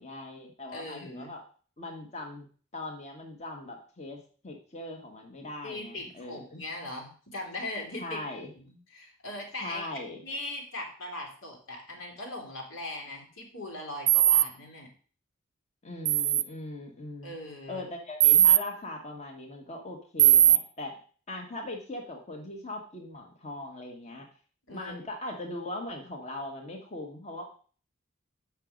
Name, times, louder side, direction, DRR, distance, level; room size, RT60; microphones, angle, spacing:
voice 1, 0.0-1.4 1.8-2.5 2.7-4.2 4.4-6.6 8.0-8.5 9.6-10.2 15.8-17.3 17.7-20.9 21.3-24.3 24.7-27.4, left 2 dB, 35° left, 1 dB, 1.4 m, -40 dB
voice 2, 0.7-1.3 5.6-8.2 8.5-9.9 10.2-14.9 17.2-17.9 24.7-25.0, left 1 dB, 85° left, 0 dB, 3.0 m, -39 dB
sound 1, 14.1-14.4 16.0-16.4 18.2-18.6 20.2-20.6, right 12 dB, 30° right, 0.4 m, -19 dB
8.0 x 5.9 x 5.1 m, 0.42 s
head